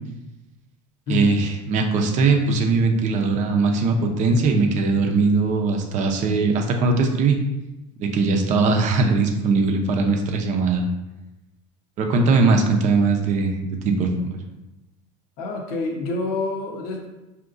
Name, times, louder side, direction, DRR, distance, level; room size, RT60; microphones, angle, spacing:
voice 1, 1.1-7.4 8.0-10.8 12.0-14.4, right 3 dB, 45° right, 3 dB, 0.6 m, -20 dB
voice 2, 15.4-17.1, left 2 dB, 65° left, 1 dB, 0.8 m, -27 dB
4.7 x 2.8 x 2.5 m, 1.0 s
supercardioid pair, 110°, 16 cm